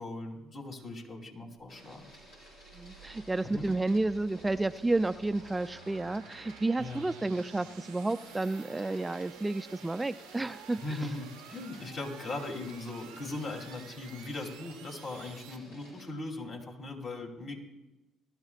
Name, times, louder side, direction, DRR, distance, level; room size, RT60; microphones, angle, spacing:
voice 1, 0.0-2.1 3.5-3.7 6.8-7.1 10.8-17.6, left 2 dB, 55° left, -1 dB, 3.1 m, -39 dB
Printer, 1.7-16.1, equal, 90° left, 5.0 m, -55 dB
sound 1, 1.8-15.6, right 10 dB, 80° right, 0.7 m, -52 dB
voice 2, 2.7-11.0, right 2 dB, 20° right, 11 dB, 0.4 m, -31 dB
20.5 x 12.5 x 2.4 m, 1.0 s
hypercardioid pair, 55°, 0 cm